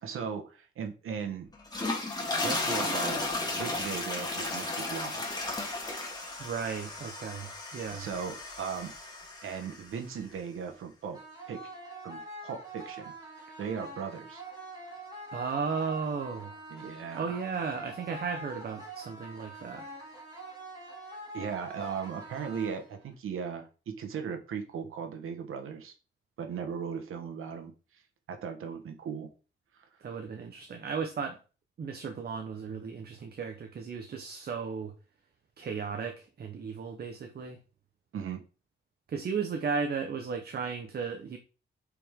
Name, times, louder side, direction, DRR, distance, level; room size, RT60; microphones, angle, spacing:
voice 1, 0.0-1.5 2.4-5.2 7.9-8.9 9.4-11.2 11.5-11.7 12.0-13.1 13.6-14.4 16.7-17.4 21.3-25.9 26.4-28.0 28.3-29.3 38.1-38.4, right 6 dB, 85° right, 1.4 m, -37 dB
sound 1, 1.5-9.9, left 2 dB, 20° left, 2.0 m, -34 dB
voice 2, 6.4-8.1 15.3-16.6 17.1-19.9 30.0-31.4 31.8-34.9 35.6-37.6 39.1-41.4, right 5 dB, 50° right, 1.0 m, -35 dB
sound 2, 11.1-23.1, right 2 dB, 20° right, 3.1 m, -45 dB
8.5 x 5.0 x 3.7 m
wide cardioid pair, 140°, 21 cm